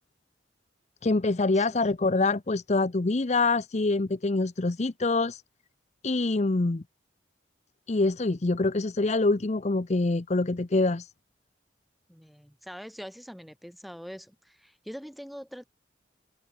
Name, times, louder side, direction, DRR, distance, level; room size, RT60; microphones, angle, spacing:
voice 1, 1.0-5.4 6.0-6.8 7.9-11.1, left 3 dB, 40° left, 0.6 m, -25 dB
voice 2, 12.1-15.7, equal, ahead, 6.9 m, -43 dB
open air
head